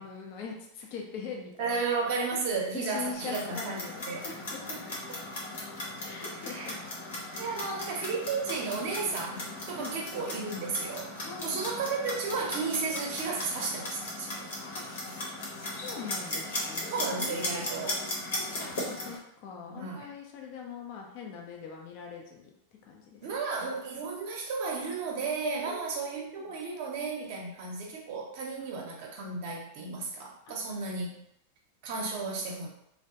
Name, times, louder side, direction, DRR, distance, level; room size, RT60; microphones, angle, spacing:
voice 1, 0.0-1.9 2.7-5.0 6.0-6.8 7.4-7.6 9.8-10.0 11.2-11.7 15.5-22.5 22.8-23.2 25.6-26.4, left 6 dB, 50° left, 0 dB, 0.5 m, -43 dB
voice 2, 1.6-3.8 4.0-4.2 4.7-4.8 6.5-6.7 7.4-14.5 16.9-18.0 19.6-20.1 23.2-31.2 31.8-32.7, right 4 dB, 60° right, -1 dB, 0.6 m, -33 dB
Clock, 3.1-19.2, left 1 dB, 85° left, 0.9 m, -37 dB
2.2 x 2.0 x 2.8 m, 0.75 s
supercardioid pair, 130°, 0 cm